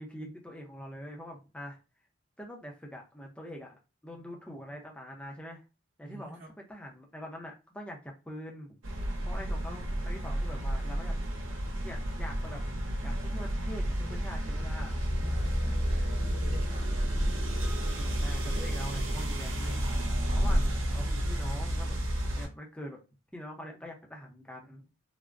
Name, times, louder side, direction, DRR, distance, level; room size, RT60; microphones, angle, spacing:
voice 1, 0.0-1.8 2.4-5.6 6.0-8.7 9.2-11.2 11.6-12.6 13.0-15.0 17.8-20.0 20.3-22.0 22.3-23.0 23.3-24.9, equal, 5° left, 0.6 m, -44 dB
voice 2, 6.0-6.5 15.2-17.1, right 1 dB, 35° right, 0.9 m, -48 dB
sound 1, 8.8-22.5, equal, 80° right, 0.9 m, -31 dB
3.4 x 2.1 x 2.4 m
head